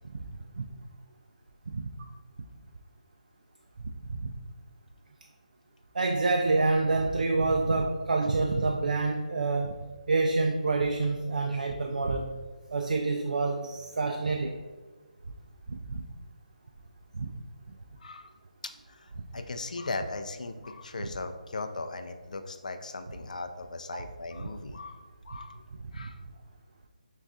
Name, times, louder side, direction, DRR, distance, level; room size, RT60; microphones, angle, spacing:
voice 1, 1.7-2.1 4.1-4.3 5.9-9.8 10.1-12.4 12.7-14.6 15.7-16.1 17.1-17.3 21.0-21.1 23.9-24.0 26.0-26.1, right 3 dB, 75° right, 3 dB, 0.3 m, -27 dB
voice 2, 18.0-18.3 18.9-25.6 25.9-26.2, left 3 dB, 65° left, 7 dB, 0.4 m, -38 dB
5.9 x 2.3 x 2.6 m, 1.3 s
hypercardioid pair, 175°, 4 cm